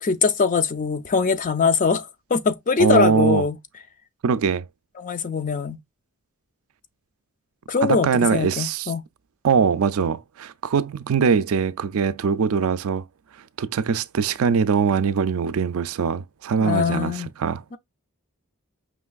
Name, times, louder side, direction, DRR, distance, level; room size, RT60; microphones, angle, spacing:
voice 1, 0.0-3.6 5.0-5.8 7.7-9.0 16.6-17.3 17.7-17.8, left 5 dB, 35° left, 0.5 m, -22 dB
voice 2, 2.8-3.4 4.2-4.7 7.8-8.9 9.4-13.0 13.6-17.6, right 6 dB, 70° right, 0.4 m, -22 dB
5.2 x 3.2 x 2.3 m
head